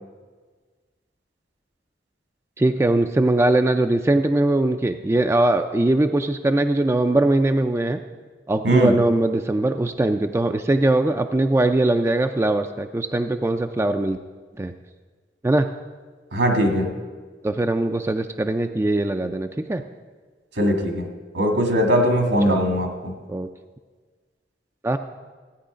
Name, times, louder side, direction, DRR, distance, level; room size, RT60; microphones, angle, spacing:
voice 1, 2.6-8.0 8.5-14.2 14.6-14.7 15.4-15.7 17.4-19.8 22.5-22.6 23.3-23.5 24.8-25.0, right 2 dB, 15° right, 7 dB, 0.3 m, -21 dB
voice 2, 8.6-9.0 16.3-16.9 20.6-21.1 21.3-23.1, equal, 75° right, 3 dB, 1.8 m, -20 dB
14.5 x 9.3 x 5.0 m, 1.5 s
head